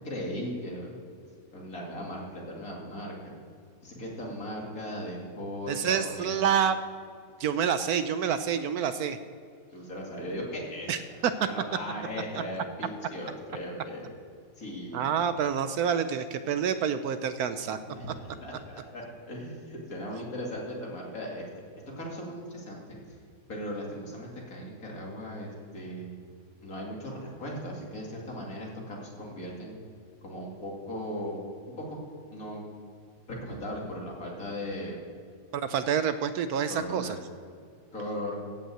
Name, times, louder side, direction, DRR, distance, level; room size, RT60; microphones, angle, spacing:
voice 1, 0.0-0.9 1.5-3.3 3.8-6.5 9.7-10.9 11.4-14.1 14.6-15.1 17.6-21.5 22.0-22.8 23.5-26.1 26.6-29.8 30.2-31.4 31.8-32.0 32.3-32.7 33.3-35.0 36.7-37.1 37.9-38.4, equal, 50° left, -2 dB, 2.7 m, -38 dB
voice 2, 5.7-6.8 7.4-9.2 10.9-11.3 14.9-17.8 35.5-37.2, right 8 dB, 75° right, 11 dB, 0.9 m, -28 dB
14.0 x 5.5 x 8.8 m, 2.3 s
omnidirectional pair, 2.0 m